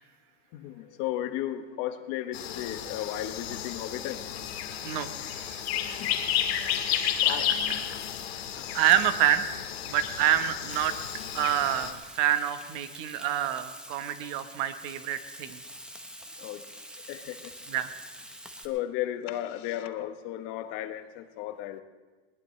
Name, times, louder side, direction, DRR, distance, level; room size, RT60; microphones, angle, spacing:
voice 1, 0.5-4.2 5.8-6.1 7.2-7.6 7.9-8.0 16.4-16.6 17.1-17.4 18.6-21.8, left 12 dB, 45° left, 9 dB, 1.1 m, -34 dB
sound 1, 2.3-11.9, left 10 dB, 85° left, 1.9 m, -32 dB
voice 2, 4.8-5.6 7.5-7.6 8.7-9.5 9.8-11.0 11.3-15.6 17.7-17.9, right 11 dB, 45° right, 10 dB, 1.0 m, -27 dB
Frying (food), 10.7-18.6, equal, 5° right, 0.9 m, -46 dB
20.0 x 20.0 x 3.2 m, 1.3 s
supercardioid pair, 145°, 31 cm